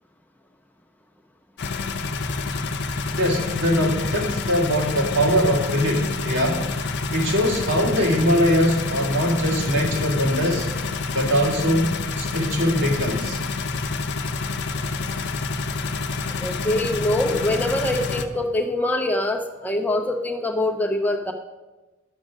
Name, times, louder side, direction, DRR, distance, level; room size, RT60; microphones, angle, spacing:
sound 1, 1.6-18.2, left 4 dB, 60° left, 0.7 m, -28 dB
voice 1, 3.2-6.7 7.1-10.7 11.1-13.4, equal, 65° right, -1 dB, 2.2 m, -22 dB
voice 2, 16.4-21.3, left 1 dB, 10° left, 2 dB, 0.6 m, -24 dB
10.0 x 6.3 x 6.3 m, 1.2 s
head